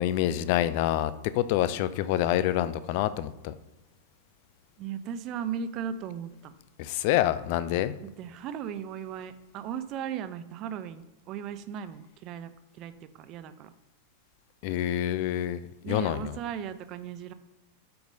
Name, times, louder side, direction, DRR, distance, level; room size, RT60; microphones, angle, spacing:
voice 1, 0.0-3.5 6.8-7.9 14.6-16.3, left 12 dB, 45° left, 14 dB, 0.4 m, -27 dB
voice 2, 4.8-6.5 8.0-12.5 12.8-13.7 15.8-17.3, right 8 dB, 35° right, 12 dB, 0.5 m, -37 dB
5.1 x 4.6 x 5.2 m, 1.0 s
figure-of-eight pair, 90°, 0 cm